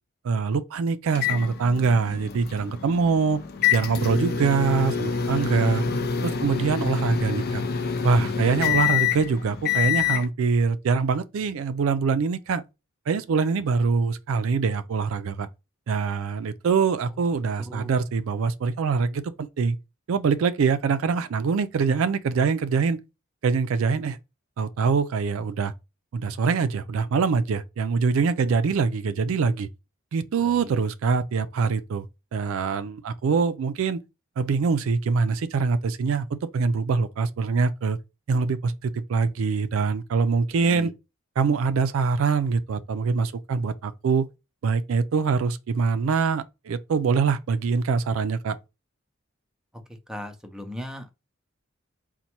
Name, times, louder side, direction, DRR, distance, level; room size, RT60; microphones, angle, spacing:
voice 1, 0.2-3.4 3.7-5.8 6.2-7.6 8.0-12.6 13.1-15.5 15.9-19.8 20.1-23.0 23.4-24.2 24.6-25.7 26.1-29.7 30.1-32.1 32.3-34.0 34.4-38.0 38.3-40.9 41.4-44.3 44.6-48.6, right 5 dB, 75° right, 0.4 m, -24 dB
sound 1, 1.1-10.3, left 7 dB, 50° left, 0.5 m, -27 dB
voice 2, 30.4-30.8 40.6-40.9 50.1-51.1, left 1 dB, 5° right, 0.5 m, -38 dB
4.1 x 2.2 x 4.3 m
head